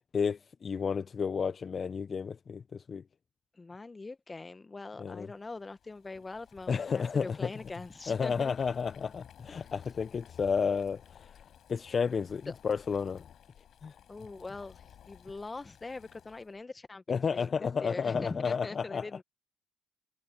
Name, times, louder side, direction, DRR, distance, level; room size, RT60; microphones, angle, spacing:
voice 1, 0.1-3.0 5.0-5.3 6.7-7.5 8.1-11.4 11.7-13.2 13.8-14.0 17.1-19.1, left 6 dB, 40° left, 1.0 m, -32 dB
voice 2, 3.5-8.6 9.5-9.6 12.5-12.6 14.1-19.2, left 3 dB, 25° left, 1.7 m, -42 dB
Boiling, 5.3-16.6, left 9 dB, 60° left, 5.3 m, -56 dB
hypercardioid pair, 55°, 0 cm